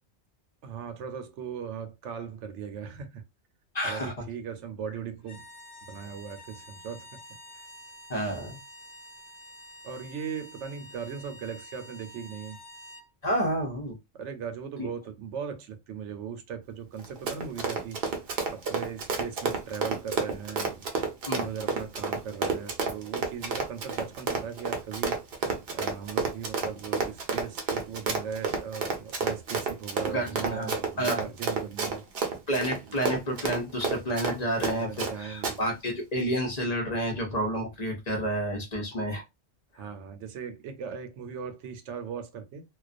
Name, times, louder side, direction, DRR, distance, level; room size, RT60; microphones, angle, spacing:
voice 1, 0.6-3.2 3.8-5.4 5.9-7.2 7.5-7.6 9.8-12.6 14.1-18.2 18.5-20.9 21.3-25.2 25.7-32.0 32.9-33.0 34.7-35.6 39.7-42.6, right 7 dB, 85° right, 0.9 m, -38 dB
voice 2, 3.7-4.1 8.1-8.6 13.2-14.0 14.8-14.9 21.3-21.5 30.1-31.3 32.5-39.2, right 1 dB, 45° left, 0.7 m, -30 dB
sound 1, 5.2-13.1, equal, 85° left, 1.1 m, -48 dB
Run, 17.0-35.1 35.4-35.6, right 4 dB, 60° right, 0.8 m, -30 dB
2.3 x 2.2 x 2.4 m
omnidirectional pair, 1.2 m